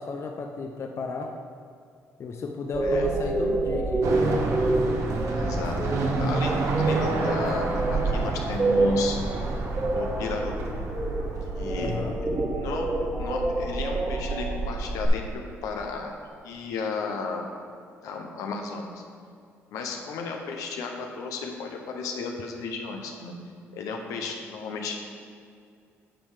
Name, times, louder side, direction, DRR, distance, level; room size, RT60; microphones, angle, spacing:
voice 1, 0.0-1.3 2.2-4.1 11.8-12.1, left 4 dB, 50° left, 2 dB, 0.7 m, -34 dB
sound 1, 2.7-15.1, right 2 dB, 35° right, 1.7 m, -27 dB
sound 2, 4.0-12.1, right 3 dB, 65° right, 1.1 m, -30 dB
voice 2, 5.4-5.8 6.2-9.2 9.9-10.8 11.5-11.9 12.5-12.9 13.2-15.2 15.6-16.1 16.4-17.5 18.0-19.0 19.7-23.3 23.7-25.0, left 4 dB, 80° left, 2 dB, 1.0 m, -33 dB
9.0 x 4.6 x 5.0 m, 2.4 s
supercardioid pair, 75°, 6 cm